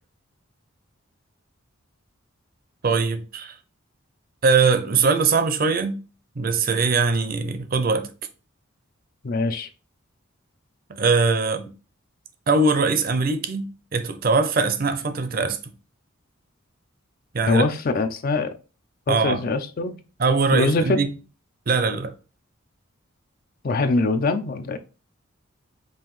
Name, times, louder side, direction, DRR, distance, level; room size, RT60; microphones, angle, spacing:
voice 1, 2.8-3.6 4.4-6.0 6.4-8.1 10.9-11.7 12.5-15.6 17.3-17.6 19.1-19.4 20.2-21.1 21.7-22.1, right 4 dB, 45° right, 0.5 m, -21 dB
voice 2, 9.2-9.7 17.5-18.5 19.1-20.0 20.5-21.0 23.6-24.8, left 3 dB, 45° left, 0.4 m, -23 dB
5.4 x 2.6 x 3.1 m
head